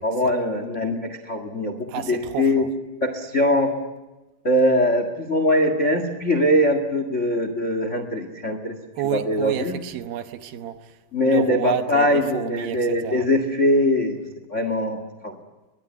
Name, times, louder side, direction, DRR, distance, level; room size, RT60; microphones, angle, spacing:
voice 1, 0.0-2.7 3.0-3.7 4.4-8.8 9.1-9.7 11.1-14.2 14.5-15.4, left 1 dB, 45° left, 0.9 m, -22 dB
voice 2, 1.9-2.7 9.0-11.0 11.3-13.3, right 10 dB, 70° right, 2.8 m, -30 dB
24.5 x 20.5 x 9.7 m
omnidirectional pair, 4.6 m